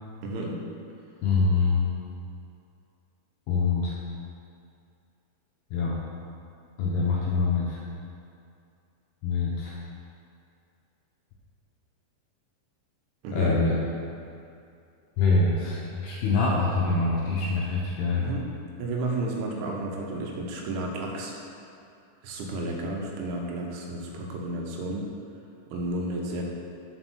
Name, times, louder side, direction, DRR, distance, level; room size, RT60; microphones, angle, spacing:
voice 1, 0.2-0.6 13.2-13.6 18.2-18.5 18.8-21.3 22.2-25.1 25.7-26.4, right 2 dB, 80° right, 0 dB, 3.2 m, -32 dB
voice 2, 1.2-1.8 3.5-4.0 5.7-6.0 6.8-7.8 9.2-9.8 13.3-13.7 15.2-18.3, left 3 dB, 80° left, -4 dB, 2.5 m, -24 dB
6.2 x 5.6 x 6.1 m, 2.5 s
omnidirectional pair, 5.4 m